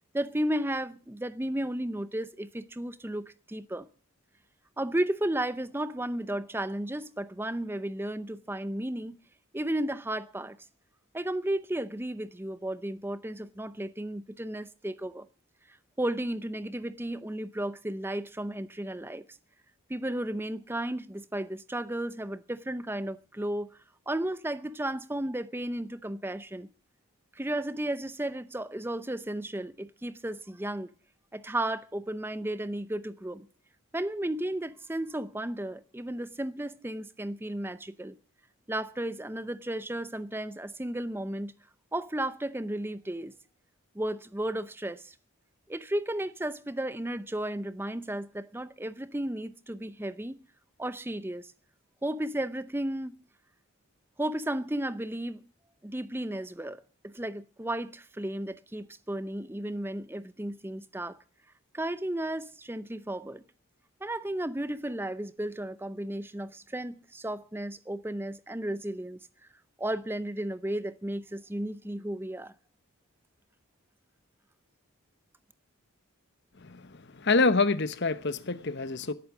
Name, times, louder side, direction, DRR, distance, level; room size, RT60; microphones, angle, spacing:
voice 1, 0.1-3.9 4.8-9.2 9.5-10.6 11.1-15.3 16.0-19.2 19.9-23.7 24.1-26.7 27.4-30.9 31.3-33.5 33.9-38.2 38.7-41.5 41.9-43.3 43.9-45.1 45.7-50.4 50.8-51.5 52.0-53.2 54.2-55.4 55.8-61.2 61.7-63.4 64.0-69.2 69.8-72.5, right 1 dB, 10° right, 0.6 m, -34 dB
voice 2, 76.6-79.1, left 3 dB, 50° left, 1.0 m, -27 dB
17.0 x 8.5 x 7.2 m
head